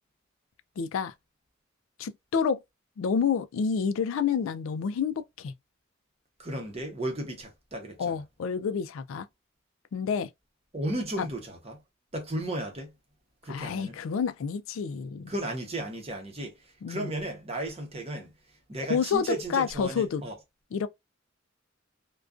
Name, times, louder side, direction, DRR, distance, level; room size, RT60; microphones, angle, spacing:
voice 1, 0.8-1.1 2.0-2.6 3.0-5.5 8.0-9.3 9.9-10.3 11.2-11.3 13.5-15.3 16.8-17.1 18.9-20.2 20.7-20.9, left 6 dB, 85° left, 0.3 m, -29 dB
voice 2, 6.4-8.2 10.7-11.8 12.1-12.9 13.4-14.0 15.3-16.5 16.9-18.3 18.7-20.3, right 1 dB, 30° right, 0.8 m, -34 dB
2.4 x 2.2 x 2.3 m
head